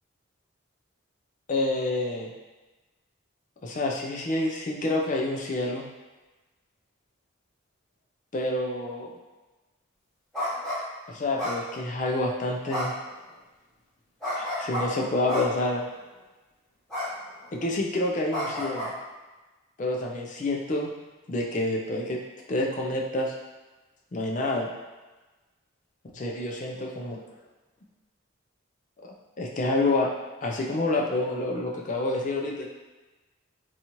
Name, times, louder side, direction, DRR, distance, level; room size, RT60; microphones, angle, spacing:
voice 1, 1.5-2.3 3.6-5.9 8.3-9.1 11.1-12.9 14.3-15.8 17.5-18.9 19.8-20.9 21.3-22.2 22.5-23.3 24.1-24.7 26.1-27.2 29.4-30.1 30.4-32.7, left 2 dB, 40° left, -1 dB, 0.4 m, -28 dB
sound 1, 10.3-10.8 11.4-12.0 12.7-13.1 14.2-14.8 15.3-15.7 16.9-17.1 17.4-17.7 18.3-18.9, left 1 dB, 5° left, 0.9 m, -31 dB
2.7 x 2.3 x 2.9 m, 1.2 s
head